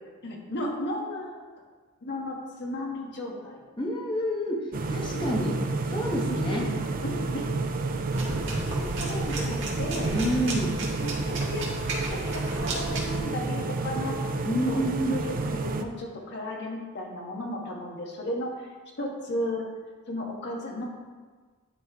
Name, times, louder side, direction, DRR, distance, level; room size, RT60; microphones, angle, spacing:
voice 1, 0.2-1.4 2.0-3.6 5.1-5.2 7.0-7.5 8.7-10.1 11.0-11.6 11.9-14.2 14.7-18.5 19.0-19.6 20.1-20.8, left 1 dB, 55° left, -1 dB, 1.4 m, -34 dB
voice 2, 3.8-5.6 5.9-6.7 10.1-10.8 14.4-15.1, equal, 20° left, -1 dB, 1.1 m, -28 dB
sound 1, 4.7-15.8, right 3 dB, 40° right, 0.5 m, -30 dB
sound 2, 8.1-13.2, right 2 dB, 60° right, 1.7 m, -34 dB
10.5 x 4.3 x 3.6 m, 1.4 s
head